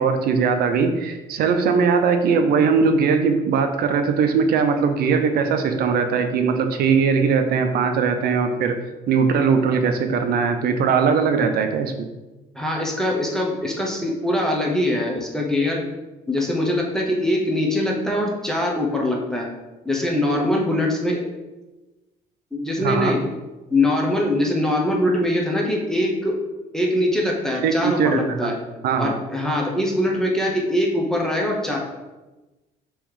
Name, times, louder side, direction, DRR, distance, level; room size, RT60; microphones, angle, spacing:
voice 1, 0.0-8.8 9.1-12.1 22.8-23.1 27.6-28.5 28.8-29.2, right 5 dB, 65° right, 7 dB, 0.6 m, -20 dB
voice 2, 12.5-15.8 16.3-19.5 19.8-21.3 22.5-23.2 23.7-26.4 26.7-28.5 29.0-31.8, left 1 dB, 5° left, -2 dB, 0.8 m, -22 dB
3.5 x 3.1 x 4.8 m, 1.1 s
cardioid pair, 110°, 17 cm